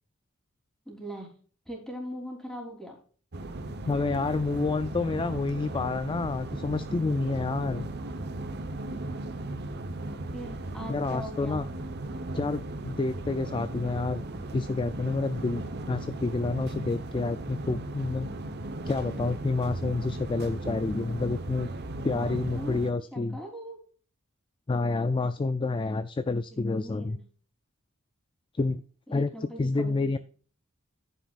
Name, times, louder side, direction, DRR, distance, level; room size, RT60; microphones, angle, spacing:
voice 1, 0.8-1.3 1.6-3.0 10.3-11.6 22.0-22.8 23.1-23.8 26.5-27.2 29.1-30.2, equal, ahead, -1 dB, 3.4 m, -40 dB
sound 1, 3.3-22.9, right 2 dB, 50° right, 1.0 m, -37 dB
voice 2, 3.9-7.9 10.9-11.7 12.3-14.2 14.5-18.3 18.8-21.7 22.0-23.4 24.7-27.2 28.5-28.8 29.1-29.3 29.6-30.2, left 3 dB, 25° left, 12 dB, 0.3 m, -29 dB
11.0 x 9.3 x 2.5 m, 0.42 s
head